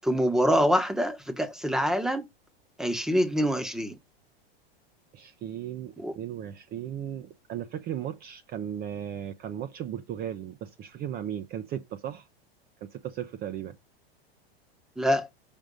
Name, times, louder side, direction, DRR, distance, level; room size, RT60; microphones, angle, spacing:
voice 1, 0.0-2.2 2.8-4.0 6.0-6.1 15.0-15.3, equal, ahead, 1.1 m, -25 dB
voice 2, 5.1-12.3 12.8-13.7, right 10 dB, 30° right, 0.7 m, -36 dB
5.4 x 5.1 x 6.3 m
supercardioid pair, 130°, 31 cm